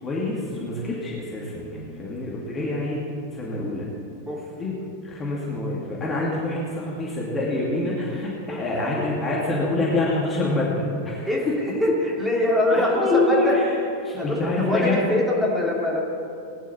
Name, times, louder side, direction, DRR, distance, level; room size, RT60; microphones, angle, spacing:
voice 1, 0.0-3.0 3.3-3.9 4.6-4.7 5.0-11.3 12.7-13.5 14.0-15.0, left 2 dB, 20° left, -5 dB, 2.5 m, -26 dB
voice 2, 8.5-8.9 11.3-13.6 14.2-16.0, left 1 dB, 5° right, -5 dB, 3.2 m, -24 dB
19.0 x 10.0 x 4.4 m, 2.5 s
figure-of-eight pair, 90°, 0 cm